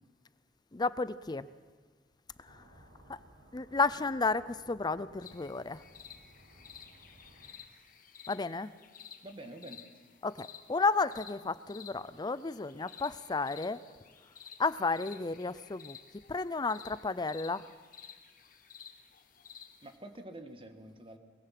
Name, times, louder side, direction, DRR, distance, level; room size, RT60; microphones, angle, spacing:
voice 1, 0.7-1.5 3.1-3.2 3.5-5.8 8.3-8.7 10.2-13.8 14.6-16.0 16.3-17.7, left 4 dB, 25° left, 16 dB, 0.5 m, -32 dB
sound 1, 2.4-7.5, right 1 dB, 75° right, 5.4 m, -59 dB
sound 2, 5.2-20.0, left 8 dB, 50° left, 1.5 m, -53 dB
voice 2, 9.2-9.8 19.8-21.2, right 1 dB, 30° right, 7 dB, 1.7 m, -47 dB
22.0 x 21.0 x 6.0 m, 1.5 s
head